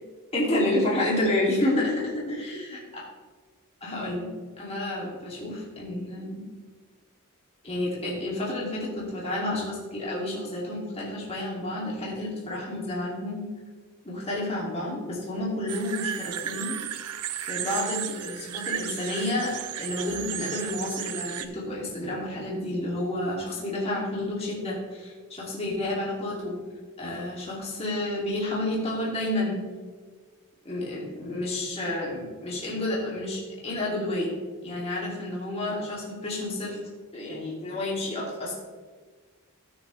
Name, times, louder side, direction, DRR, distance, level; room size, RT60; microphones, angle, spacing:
voice 1, 0.3-2.6 2.9-3.0 3.8-4.3 4.6-6.5 7.6-13.5 14.0-16.8 17.4-19.5 19.8-26.6 27.0-29.6 30.6-34.3 34.6-36.8 37.1-38.6, left 1 dB, 25° left, -5 dB, 2.3 m, -30 dB
sound 1, 15.7-21.5, right 10 dB, 90° right, 0.6 m, -34 dB
16.5 x 6.5 x 3.1 m, 1.4 s
head